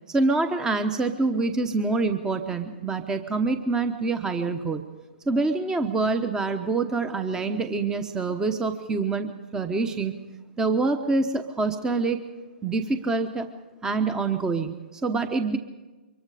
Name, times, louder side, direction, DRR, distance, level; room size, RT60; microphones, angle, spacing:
voice 1, 0.1-4.8 5.3-10.2 10.6-12.2 12.6-13.5 13.8-15.6, right 3 dB, 10° right, 8 dB, 1.0 m, -26 dB
24.5 x 22.0 x 5.0 m, 1.2 s
hypercardioid pair, 130°, 6 cm